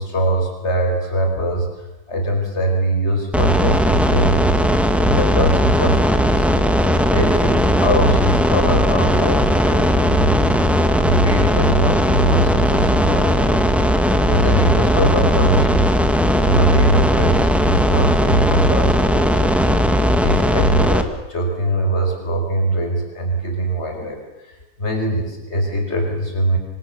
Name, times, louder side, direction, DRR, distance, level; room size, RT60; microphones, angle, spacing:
voice 1, 0.0-4.6 5.0-6.5 7.1-10.4 11.0-15.9 16.4-19.5 20.1-24.2 24.4-26.6, right 1 dB, 40° left, 3 dB, 5.1 m, -22 dB
sound 1, 3.3-21.0, equal, ahead, 1.7 m, -17 dB
26.5 x 26.0 x 7.0 m, 0.93 s
omnidirectional pair, 1.7 m